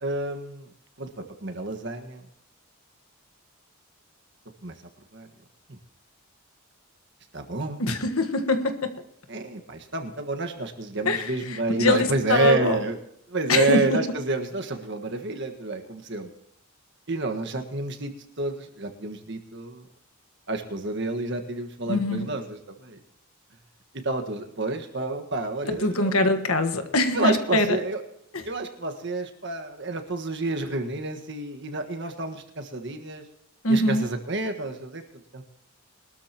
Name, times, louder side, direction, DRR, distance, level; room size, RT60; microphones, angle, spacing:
voice 1, 0.0-0.7 1.0-2.2 4.6-4.8 5.1-5.3 5.7-5.8 7.3-7.8 9.3-13.0 13.3-16.3 17.1-19.9 20.5-23.0 24.0-26.2 27.1-28.0 28.4-33.3 33.7-35.0 35.3-35.4, right 3 dB, 55° right, 1.6 m, -29 dB
voice 2, 7.8-9.0 11.0-12.9 13.5-14.0 21.9-22.3 25.8-27.8 28.3-28.4 33.6-34.1, left 2 dB, 75° left, 1.5 m, -23 dB
23.0 x 13.0 x 3.0 m
head